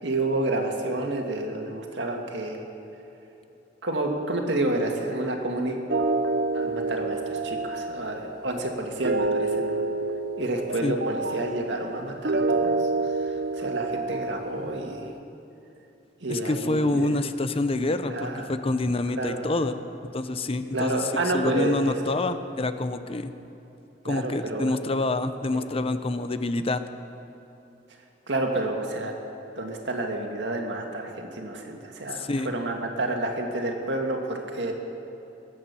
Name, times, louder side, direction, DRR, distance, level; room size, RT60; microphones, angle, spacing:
voice 1, 0.0-2.6 3.8-5.8 6.5-9.8 10.4-15.1 16.2-17.1 18.1-18.5 19.2-19.5 20.7-22.0 22.2-22.4 24.0-24.7 25.5-25.7 28.3-29.1 29.6-34.7, right 2 dB, 80° right, 2 dB, 2.0 m, -29 dB
sound 1, 5.9-15.1, right 3 dB, 65° right, 0.7 m, -28 dB
voice 2, 16.3-19.8 20.0-21.0 21.3-23.3 24.0-26.8 32.1-32.5, left 2 dB, 35° left, 10 dB, 0.7 m, -27 dB
22.5 x 8.7 x 6.9 m, 2.9 s
head